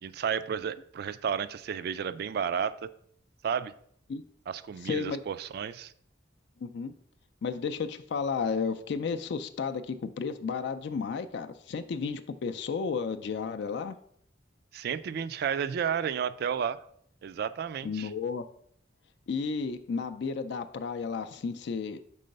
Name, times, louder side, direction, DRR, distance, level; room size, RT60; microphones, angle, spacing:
voice 1, 0.0-2.9 3.4-3.7 4.5-5.9 14.7-16.8 17.2-18.1, right 7 dB, 60° right, 15 dB, 0.3 m, -32 dB
voice 2, 4.8-5.2 6.6-6.9 7.4-14.0 17.8-18.4 19.3-22.0, left 5 dB, 65° left, 9 dB, 0.4 m, -33 dB
5.4 x 3.8 x 5.2 m, 0.66 s
head